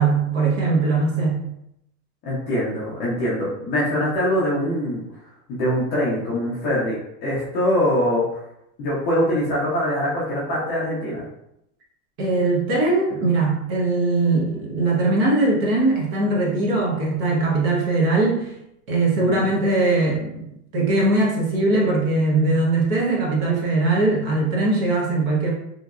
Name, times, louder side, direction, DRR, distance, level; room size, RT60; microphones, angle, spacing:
voice 1, 0.0-1.4 12.2-18.5 18.9-20.5 20.7-25.5, right 2 dB, 35° right, -3 dB, 0.9 m, -20 dB
voice 2, 2.2-5.0 5.5-8.2 8.8-11.2 19.2-19.5, equal, 20° left, -8 dB, 0.6 m, -23 dB
3.0 x 2.6 x 2.3 m, 0.80 s
supercardioid pair, 150°, 48 cm